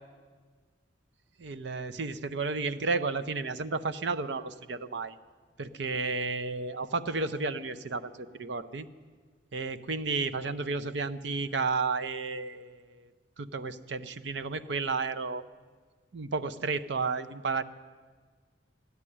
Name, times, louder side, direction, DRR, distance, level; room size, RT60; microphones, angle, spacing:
voice 1, 1.4-5.2 5.6-8.9 9.5-13.1 13.4-15.4 16.1-17.6, right 4 dB, 65° right, 12 dB, 0.6 m, -32 dB
13.5 x 9.7 x 10.0 m, 1.5 s
head